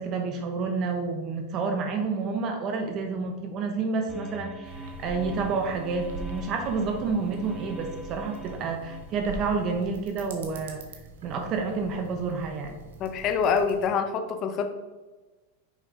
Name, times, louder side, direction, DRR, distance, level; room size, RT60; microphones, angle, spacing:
voice 1, 0.0-10.8 11.2-12.7, right 4 dB, 35° right, 4 dB, 0.8 m, -29 dB
sound 1, 4.1-9.2, right 1 dB, ahead, 1.3 m, -43 dB
sound 2, 4.6-13.8, right 2 dB, 85° right, 1.2 m, -43 dB
voice 2, 13.0-14.7, left 6 dB, 35° left, 6 dB, 0.7 m, -26 dB
6.4 x 5.3 x 3.7 m, 1.2 s
supercardioid pair, 145°, 0 cm